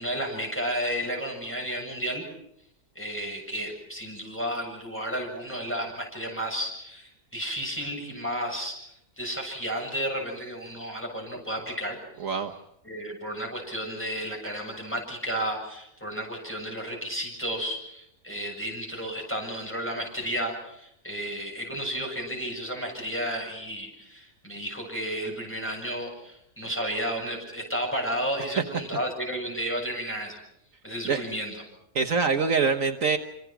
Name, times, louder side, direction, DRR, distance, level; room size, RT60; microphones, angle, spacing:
voice 1, 0.0-2.2 3.0-12.0 12.8-30.4 30.8-31.6, equal, 10° left, 1 dB, 7.5 m, -32 dB
voice 2, 31.9-33.2, right 5 dB, 60° right, 5 dB, 1.5 m, -24 dB
26.5 x 25.5 x 6.1 m, 0.77 s
omnidirectional pair, 1.6 m